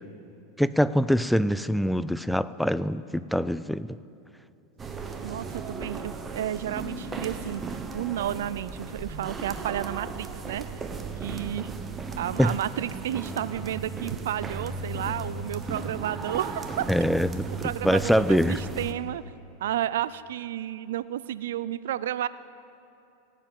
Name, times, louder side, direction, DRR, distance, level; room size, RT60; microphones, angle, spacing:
voice 1, 0.6-4.0 12.4-12.5 16.9-18.6, equal, ahead, 15 dB, 0.4 m, -24 dB
sound 1, 4.8-18.9, right 4 dB, 20° right, 1.2 m, -36 dB
voice 2, 5.2-10.7 11.2-11.7 12.2-16.8 17.6-19.2 19.6-22.3, right 12 dB, 75° right, 16 dB, 0.4 m, -32 dB
17.0 x 7.5 x 9.3 m, 2.8 s
hypercardioid pair, 105°, 0 cm